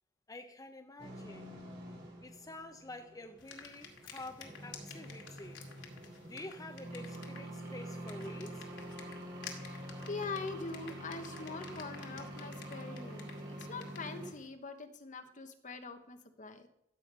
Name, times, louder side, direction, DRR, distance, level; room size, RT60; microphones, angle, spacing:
voice 1, 0.3-1.5 2.2-5.6 6.2-8.7, left 2 dB, 20° left, 0.7 m, -48 dB
sound 1, 1.0-14.3, equal, 65° right, 4.6 m, -46 dB
Flip Phone Buttons, 3.4-14.5, left 6 dB, 75° left, 2.3 m, -53 dB
voice 2, 9.6-13.3 13.6-16.7, left 3 dB, 45° left, 1.1 m, -43 dB
13.0 x 7.8 x 5.4 m
head